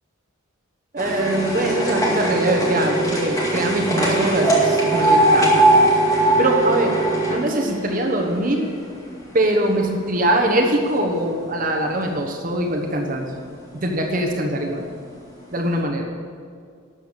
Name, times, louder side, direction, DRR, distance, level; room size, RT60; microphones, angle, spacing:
voice 1, 0.9-5.7 6.4-7.0 7.3-8.7 9.3-13.3 13.7-14.9 15.5-16.1, right 1 dB, 40° right, 2 dB, 1.1 m, -22 dB
sound 1, 1.0-9.2 9.6-10.5 11.2-11.3 11.5-11.6 11.9-12.0 12.9-13.0 13.6-13.7 14.4-14.5 14.9-15.0, right 2 dB, 15° left, 2.1 m, -20 dB
12.5 x 6.9 x 7.4 m, 2.2 s
head